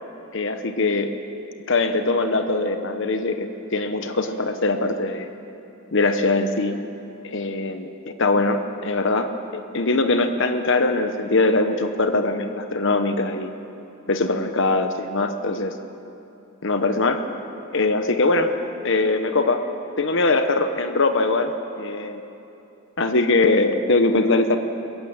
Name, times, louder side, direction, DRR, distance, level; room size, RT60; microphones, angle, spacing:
voice 1, 0.3-1.1 1.7-5.3 5.9-6.7 7.2-13.5 14.1-15.7 16.6-17.2 17.7-18.5 18.8-19.6 20.0-22.2 23.0-24.6, left 2 dB, 55° left, 8 dB, 1.0 m, -22 dB
22.0 x 15.5 x 8.9 m, 2.8 s
head